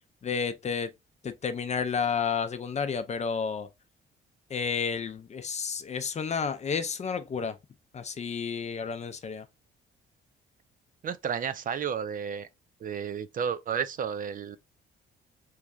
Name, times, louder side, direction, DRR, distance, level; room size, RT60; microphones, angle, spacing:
voice 1, 0.2-0.9 1.2-3.7 4.5-7.6 7.9-9.4, left 6 dB, 35° left, 0.5 m, -31 dB
voice 2, 11.0-12.5 12.8-14.6, right 7 dB, 45° right, 0.4 m, -32 dB
3.4 x 3.2 x 2.3 m
cardioid pair, 90°, 20 cm